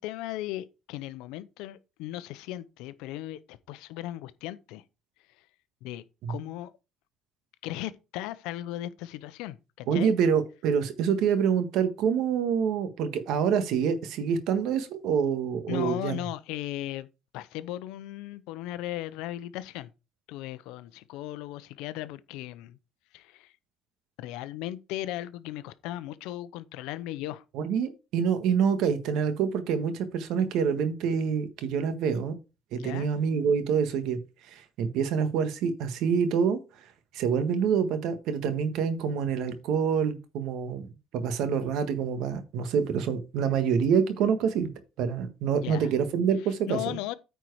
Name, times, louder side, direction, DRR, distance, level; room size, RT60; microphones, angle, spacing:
voice 1, 0.0-4.8 5.8-6.7 7.6-10.1 15.7-17.1 17.3-19.9 20.3-22.8 23.1-23.5 24.2-27.4 32.8-33.1 45.5-45.9 46.7-47.2, left 14 dB, 85° left, 0.7 m, -37 dB
voice 2, 9.9-16.2 27.5-32.3 32.7-34.2 34.5-36.6 37.1-40.9 41.1-44.7 45.0-47.0, right 7 dB, 70° right, 1.5 m, -26 dB
9.3 x 4.5 x 4.9 m
cardioid pair, 125°, 0 cm